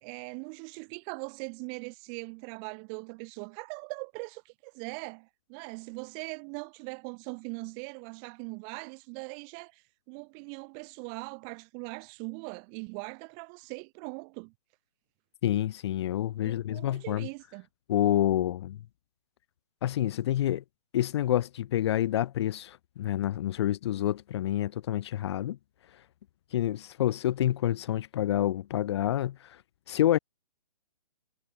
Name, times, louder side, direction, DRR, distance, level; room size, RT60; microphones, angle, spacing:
voice 1, 0.0-14.5 16.4-17.7, right 40 dB or more, 25° right, 1.6 m, -41 dB
voice 2, 15.4-17.3 17.9-18.8 19.8-20.6 20.9-25.6 26.5-29.6 29.9-30.2, left 12 dB, 40° left, 1.1 m, -28 dB
hypercardioid pair, 150°, 20 cm